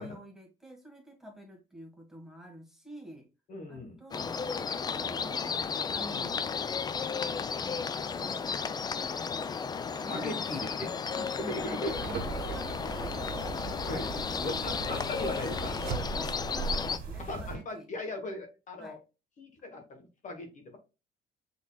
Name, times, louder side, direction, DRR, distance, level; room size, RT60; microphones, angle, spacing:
voice 1, 0.0-3.3 3.7-6.4 7.6-7.8 8.0-8.9 10.0-13.5 14.1-17.9 18.8-19.0, right 1 dB, 5° right, 2 dB, 1.5 m, -48 dB
voice 2, 3.5-4.0 6.1-6.3 9.9-10.9 11.4-12.0 12.5-12.6 13.9-14.1 14.4-15.7 17.2-19.0 19.4-20.8, left 2 dB, 50° left, 4 dB, 1.2 m, -38 dB
sound 1, 4.1-17.0, left 6 dB, 25° left, 0.3 m, -34 dB
sound 2, 11.3-16.5 17.7-17.8, right 6 dB, 75° right, 1.0 m, -43 dB
sound 3, 11.9-17.6, right 5 dB, 60° right, 1.9 m, -39 dB
6.1 x 3.8 x 2.3 m, 0.29 s
cardioid pair, 110°, 17 cm